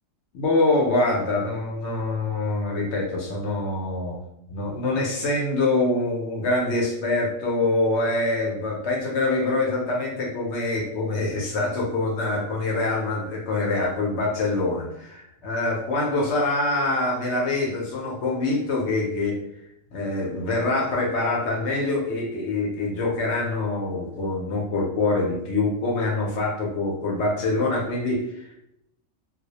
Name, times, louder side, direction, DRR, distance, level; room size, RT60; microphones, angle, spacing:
voice 1, 0.3-4.2 4.5-19.4 19.9-28.6, left 2 dB, 65° left, -2 dB, 0.8 m, -25 dB
2.2 x 2.0 x 2.7 m, 0.80 s
omnidirectional pair, 1.3 m